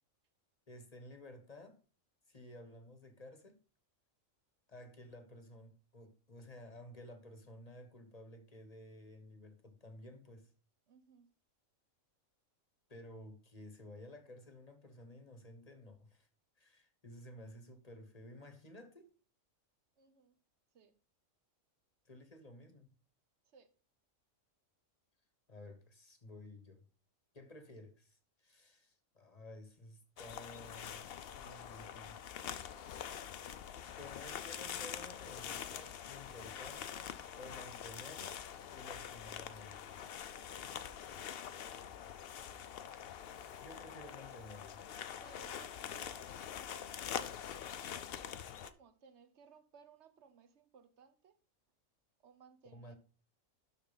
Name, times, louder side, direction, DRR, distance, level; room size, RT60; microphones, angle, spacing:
voice 1, 0.7-1.8 2.3-3.6 4.7-10.5 12.9-16.3 16.6-19.1 22.0-22.9 25.5-26.9 27.3-32.2 34.0-38.4 38.7-40.0 43.6-44.8 52.7-52.9, left 1 dB, 30° left, 1.0 m, -54 dB
voice 2, 10.9-11.3 20.0-20.3 20.7-20.9 23.5-23.7 45.2-46.4 48.6-51.3 52.2-53.0, right 6 dB, 60° right, 1.1 m, -61 dB
sound 1, 30.2-48.7, left 9 dB, 60° left, 0.7 m, -45 dB
11.5 x 4.2 x 4.0 m
omnidirectional pair, 1.4 m